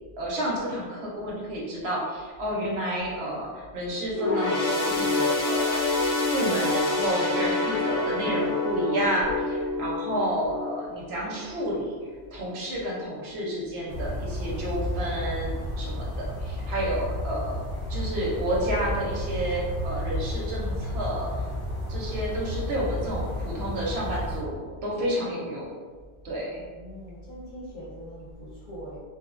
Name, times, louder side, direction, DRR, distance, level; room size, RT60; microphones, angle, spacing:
voice 1, 0.2-12.0 12.3-17.6 17.9-21.3 21.9-25.7 26.2-26.6, right 1 dB, 65° right, -4 dB, 0.8 m, -30 dB
sound 1, 4.1-11.8 12.2-12.4 13.3-13.4, left 2 dB, 85° left, 1.1 m, -27 dB
sound 2, 13.9-24.4, left 1 dB, 25° left, 0.3 m, -32 dB
voice 2, 26.7-29.0, equal, 45° left, -8 dB, 0.8 m, -42 dB
2.8 x 2.0 x 2.4 m, 1.5 s
omnidirectional pair, 1.2 m